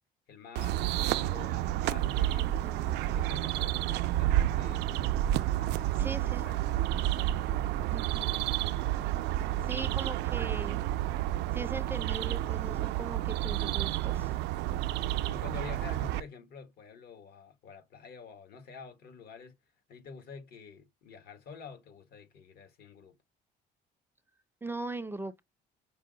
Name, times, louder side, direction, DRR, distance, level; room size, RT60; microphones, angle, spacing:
voice 1, 0.3-2.5 2.8-6.7 15.0-19.5 19.9-23.2, left 6 dB, 70° left, 1.4 m, -48 dB
sound 1, 0.6-16.2, right 13 dB, 85° right, 0.4 m, -30 dB
voice 2, 2.4-2.9 6.0-6.5 7.9-8.3 9.6-10.8 11.5-14.3 24.6-25.4, right 3 dB, 15° right, 0.4 m, -40 dB
5.4 x 2.0 x 3.8 m
cardioid pair, 110°, 17 cm